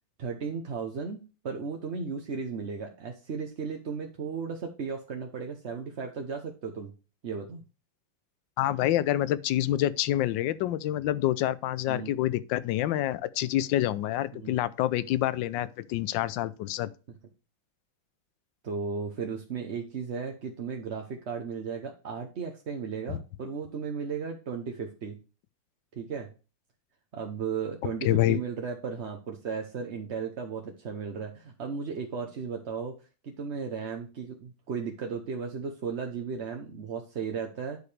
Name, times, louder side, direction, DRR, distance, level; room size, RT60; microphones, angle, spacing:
voice 1, 0.2-6.9 7.2-7.6 11.9-12.1 14.3-14.6 18.6-25.2 25.9-26.3 27.1-33.0 33.2-37.8, right 5 dB, 45° right, 0.9 m, -35 dB
voice 2, 8.6-16.9 23.1-23.2 28.0-28.4, left 13 dB, 75° left, 1.3 m, -27 dB
11.0 x 4.9 x 3.3 m
omnidirectional pair, 2.2 m